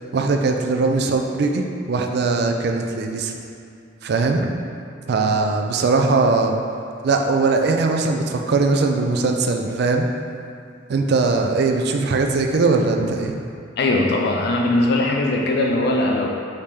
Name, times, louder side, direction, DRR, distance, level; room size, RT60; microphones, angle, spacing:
voice 1, 0.1-3.3 4.0-4.5 5.1-6.5 7.0-10.1 10.9-13.4, right 3 dB, 55° right, 3 dB, 0.3 m, -20 dB
voice 2, 13.8-16.3, left 2 dB, 55° left, 0 dB, 0.3 m, -20 dB
5.0 x 2.8 x 3.5 m, 2.5 s
head